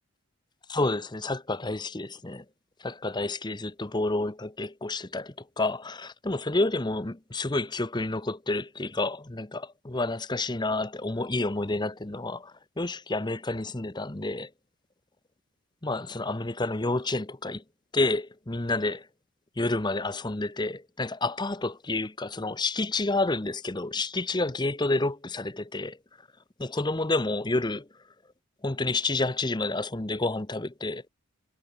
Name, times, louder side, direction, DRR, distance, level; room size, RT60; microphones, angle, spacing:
voice 1, 0.7-2.4 2.8-14.5 15.8-17.6 17.9-19.1 19.6-26.0 26.6-27.9 28.6-31.0, left 2 dB, 20° left, 0.8 m, -29 dB
head